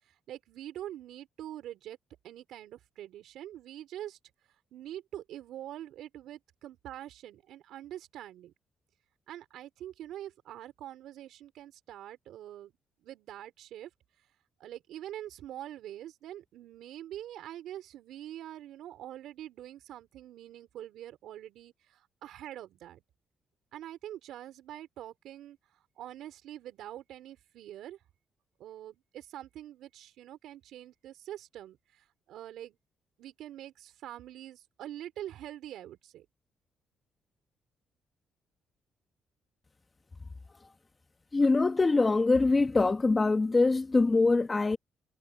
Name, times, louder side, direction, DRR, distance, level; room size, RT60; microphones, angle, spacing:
voice 1, 0.0-2.0 2.2-4.2 4.7-8.5 9.3-12.7 13.0-13.9 14.6-23.0 23.7-28.0 28.6-32.8 33.2-36.3, right 12 dB, 80° right, 4.1 m, -45 dB
voice 2, 41.3-44.8, left 3 dB, 25° left, 1.7 m, -24 dB
cardioid pair, 90°, 0 cm